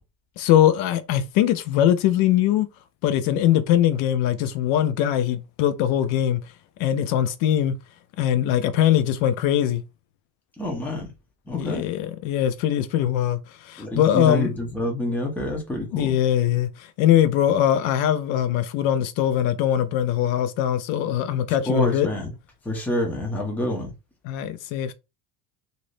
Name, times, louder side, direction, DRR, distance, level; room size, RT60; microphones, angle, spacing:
voice 1, 0.4-2.7 3.0-6.4 6.8-7.8 8.2-9.8 11.5-13.4 13.7-14.5 15.9-16.7 17.0-22.1 24.2-24.9, left 11 dB, 70° left, 0.6 m, -21 dB
voice 2, 10.6-11.1 11.5-11.8 13.8-16.1 21.7-22.3 22.7-23.9, left 1 dB, 5° left, 0.5 m, -27 dB
3.3 x 2.6 x 2.5 m
cardioid pair, 170°, 48 cm